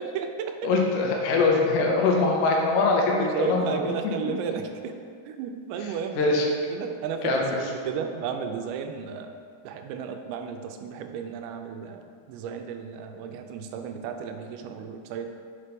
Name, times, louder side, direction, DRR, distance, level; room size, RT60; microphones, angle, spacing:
voice 1, 0.0-0.7 3.1-5.0 5.3-6.4 6.7-9.4 9.6-15.3, right 6 dB, 90° right, 5 dB, 2.8 m, -33 dB
voice 2, 0.6-3.9 6.2-6.5 7.2-7.7, left 3 dB, 80° left, 0 dB, 2.7 m, -23 dB
6.9 x 4.3 x 5.1 m, 2.2 s
omnidirectional pair, 5.0 m